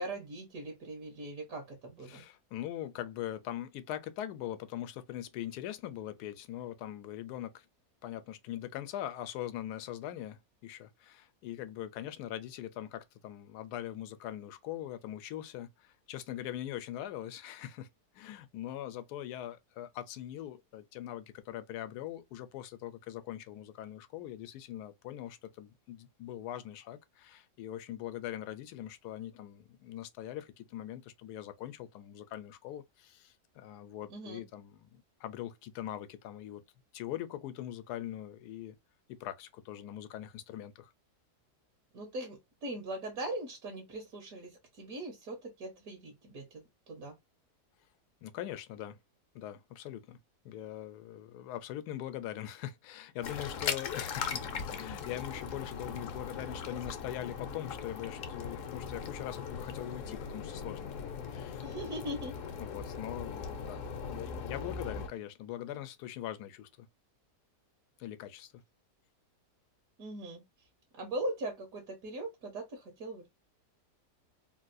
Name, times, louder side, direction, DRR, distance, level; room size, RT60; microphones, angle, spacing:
voice 1, 0.0-2.2 34.1-34.4 41.9-47.1 61.6-62.3 70.0-70.4 70.9-73.3, right 1 dB, 70° right, 1.4 m, -40 dB
voice 2, 2.1-7.7 8.0-17.9 18.1-36.6 36.9-38.8 39.1-40.9 48.2-49.0 49.3-50.2 50.4-61.6 62.6-66.9 68.0-68.5, left 12 dB, 80° left, 1.1 m, -42 dB
sound 1, 53.2-65.1, left 6 dB, 65° left, 0.9 m, -39 dB
3.4 x 2.3 x 2.5 m
omnidirectional pair, 1.7 m